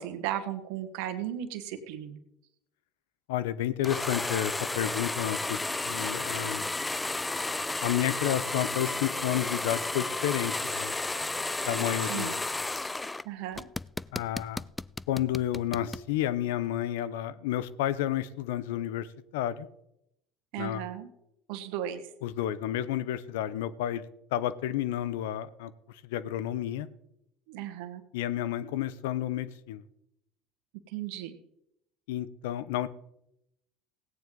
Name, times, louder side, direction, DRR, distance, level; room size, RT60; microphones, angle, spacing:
voice 1, 0.0-2.2 12.1-12.4 13.2-13.7 20.5-21.1 21.5-22.0 27.5-28.0 30.9-31.4, right 11 dB, 75° right, 8 dB, 1.5 m, -35 dB
voice 2, 3.3-5.6 5.9-6.7 7.8-10.9 11.7-12.3 14.1-14.6 15.1-19.1 19.3-19.7 20.6-20.8 22.2-24.0 24.3-25.7 26.0-26.9 28.1-29.8 32.1-32.9, left 12 dB, 80° left, 16 dB, 0.7 m, -31 dB
sound 1, 3.8-13.2 13.5-16.0, left 2 dB, 15° left, 0.3 m, -32 dB
17.0 x 9.1 x 3.9 m, 0.81 s
hypercardioid pair, 80°, 0 cm